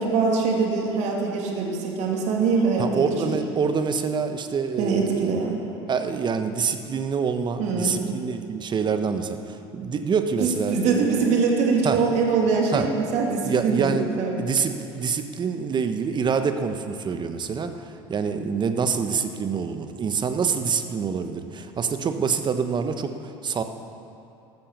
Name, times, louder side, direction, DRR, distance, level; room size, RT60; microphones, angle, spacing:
voice 1, 0.0-3.4 4.8-5.6 7.6-8.0 10.4-14.4, right 4 dB, 55° right, 0 dB, 2.9 m, -23 dB
voice 2, 2.8-5.3 5.9-11.1 11.8-12.0 12.7-12.9 13.4-14.1 14.4-23.6, right 6 dB, 30° right, 8 dB, 1.2 m, -26 dB
14.0 x 13.0 x 7.0 m, 2.7 s
hypercardioid pair, 70°, 14 cm